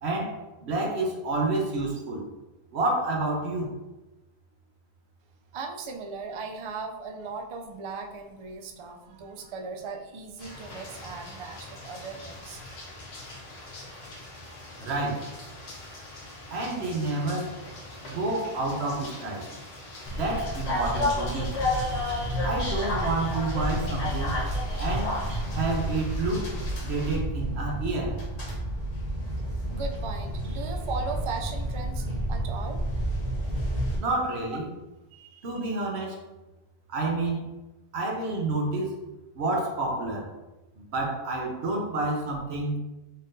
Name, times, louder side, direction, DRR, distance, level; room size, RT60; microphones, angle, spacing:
voice 1, 0.0-2.3 2.7-3.8 14.8-15.3 16.5-17.6 18.0-19.5 20.1-21.5 22.4-24.4 24.8-25.2 25.5-26.5 26.8-28.2 34.0-34.7 35.4-36.2 36.9-37.5 37.9-38.9 39.3-40.3 40.8-42.8, right 2 dB, 90° right, 0 dB, 1.1 m, -29 dB
voice 2, 5.5-12.9 29.7-32.8 35.1-35.8, right 4 dB, 55° right, 4 dB, 0.3 m, -38 dB
sound 1, 10.4-27.2, left 2 dB, 80° left, 1.1 m, -44 dB
sound 2, 20.0-34.0, equal, 40° left, 0.9 m, -30 dB
4.1 x 3.6 x 2.6 m, 1.1 s
omnidirectional pair, 1.1 m